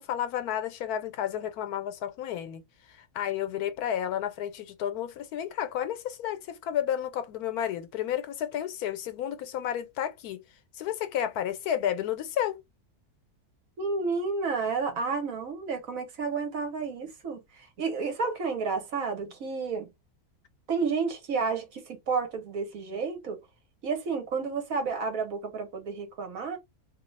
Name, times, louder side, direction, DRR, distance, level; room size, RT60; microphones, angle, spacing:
voice 1, 0.0-2.6 3.1-10.4 10.8-12.6, left 10 dB, 80° left, 1.1 m, -31 dB
voice 2, 13.8-17.4 17.8-19.9 20.7-23.4 23.8-26.6, right 4 dB, 65° right, 1.3 m, -31 dB
3.0 x 2.7 x 3.1 m
omnidirectional pair, 1.6 m